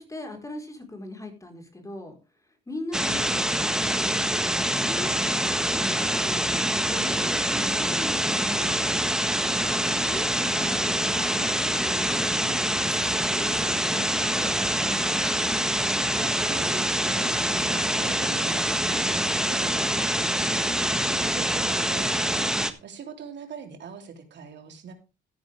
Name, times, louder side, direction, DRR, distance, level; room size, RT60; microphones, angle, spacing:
voice 1, 0.0-2.2 2.7-4.3 4.7-6.5 6.8-8.8 9.7-12.0 12.3-15.1, left 2 dB, 15° left, 4 dB, 4.5 m, -40 dB
sound 1, 2.9-22.7, right 1 dB, 5° right, 1.5 m, -25 dB
voice 2, 15.5-24.9, right 6 dB, 65° right, 5 dB, 3.3 m, -42 dB
14.5 x 10.5 x 3.5 m, 0.29 s
cardioid pair, 90°, 20 cm